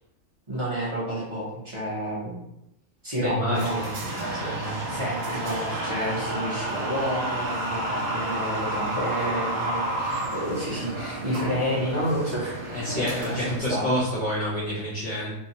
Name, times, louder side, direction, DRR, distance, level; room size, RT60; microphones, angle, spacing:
voice 1, 0.5-2.5 3.0-3.9 4.9-13.8, equal, 30° right, -7 dB, 0.6 m, -30 dB
voice 2, 3.2-3.9 4.3-5.0 12.7-15.3, left 1 dB, 50° left, -5 dB, 0.6 m, -29 dB
sound 1, 3.5-13.6, right 1 dB, 90° right, 1.2 m, -31 dB
2.6 x 2.0 x 2.8 m, 0.84 s
omnidirectional pair, 1.4 m